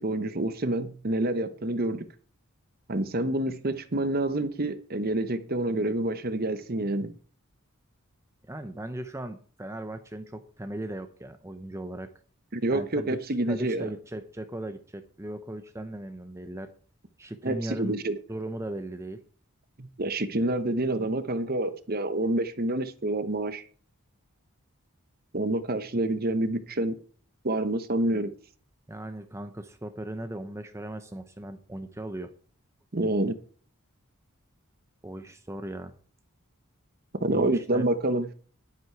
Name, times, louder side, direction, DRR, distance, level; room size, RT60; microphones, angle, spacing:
voice 1, 0.0-2.1 2.9-7.1 12.5-13.9 17.4-18.2 19.8-23.6 25.3-27.0 27.4-28.3 32.9-33.3 37.2-38.3, right 1 dB, 45° right, 1.0 m, -27 dB
voice 2, 8.5-12.1 12.7-16.7 17.2-18.0 18.3-19.2 28.9-32.3 35.0-35.9 37.3-37.8, right 1 dB, 15° right, 0.7 m, -37 dB
11.0 x 9.8 x 4.6 m
head